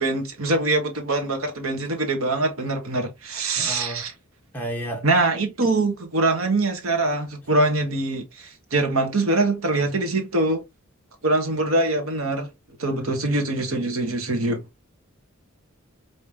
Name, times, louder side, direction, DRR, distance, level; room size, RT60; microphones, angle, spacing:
voice 1, 0.0-4.1 5.0-10.6 11.2-12.5 12.8-14.6, right 2 dB, 80° right, 1.4 m, -23 dB
voice 2, 3.6-4.0 4.5-5.0 12.9-13.3, right 1 dB, 10° left, 1.7 m, -32 dB
5.3 x 3.1 x 3.0 m
head